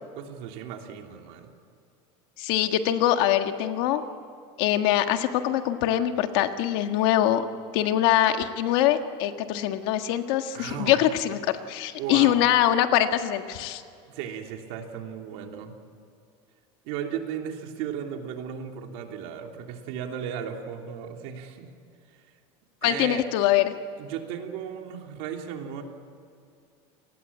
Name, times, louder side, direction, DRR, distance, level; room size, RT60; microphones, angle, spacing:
voice 1, 0.1-1.5 10.5-11.0 12.0-12.5 14.1-15.7 16.8-21.7 22.8-23.2 24.0-25.8, right 8 dB, 60° right, 3 dB, 3.1 m, -35 dB
voice 2, 2.4-4.0 4.6-7.4 7.7-13.8 22.8-23.7, left 12 dB, 65° left, 7 dB, 1.7 m, -23 dB
29.0 x 20.0 x 8.6 m, 2.4 s
cardioid pair, 175°, 14 cm